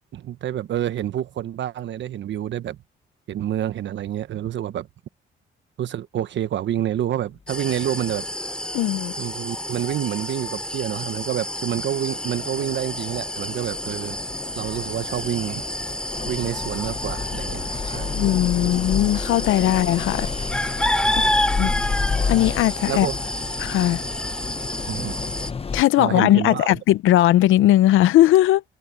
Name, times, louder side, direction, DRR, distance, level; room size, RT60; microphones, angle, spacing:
voice 1, 0.0-2.8 3.3-4.9 5.8-8.3 9.2-14.2 14.6-15.6 16.3-18.1 18.6-18.7 21.0-21.9 22.9-23.2 24.9-25.1 26.0-26.7, right 11 dB, 70° right, 1.2 m, -28 dB
sound 1, 7.5-25.5, left 1 dB, 5° left, 2.8 m, -29 dB
sound 2, 8.1-8.3 11.6-11.7 11.9-25.8, left 5 dB, 30° left, 1.0 m, -31 dB
voice 2, 8.7-9.1 18.1-20.3 21.6-21.7 22.3-23.1 23.6-24.0 25.7-28.6, left 14 dB, 85° left, 0.7 m, -18 dB
cardioid pair, 90°, 20 cm